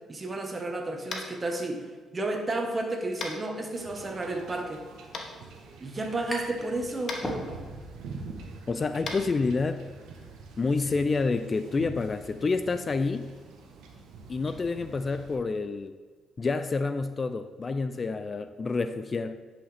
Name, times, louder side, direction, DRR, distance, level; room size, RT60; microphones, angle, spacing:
voice 1, 0.1-1.9 2.1-4.8 5.8-7.1, right 2 dB, 30° right, 3 dB, 1.2 m, -32 dB
Tap, 1.1-1.3 3.2-3.4 5.1-5.2 7.0-7.2 9.0-9.2, left 4 dB, 60° left, 1.1 m, -34 dB
Wind / Ocean / Boat Water vehicle, 3.7-15.3, right 4 dB, 90° right, 1.1 m, -46 dB
sound 1, 6.3-6.7 7.0-7.9, equal, 15° left, 1.7 m, -36 dB
voice 2, 8.7-9.8 10.6-13.3 14.3-15.9 16.4-19.4, left 4 dB, 35° left, 10 dB, 0.3 m, -28 dB
10.0 x 5.7 x 3.4 m, 1.5 s
cardioid pair, 90°, 0 cm